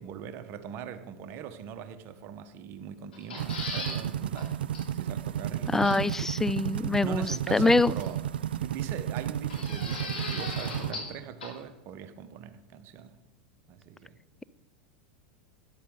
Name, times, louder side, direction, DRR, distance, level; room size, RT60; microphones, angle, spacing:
voice 1, 0.0-4.6 4.9-6.1 7.0-8.2 8.5-13.2 13.7-14.2, right 8 dB, 45° right, 1.1 m, -41 dB
sound 1, 3.1-4.0 4.4-4.5 4.7-4.8 5.8-6.2 7.5-8.1 9.5-11.1 11.4-11.5, left 3 dB, 80° left, 3.6 m, -38 dB
sound 2, 3.4-10.9, right 10 dB, 75° right, 0.4 m, -33 dB
voice 2, 5.7-7.9, left 2 dB, 5° left, 0.4 m, -24 dB
13.0 x 11.0 x 3.8 m
hypercardioid pair, 90°, 5 cm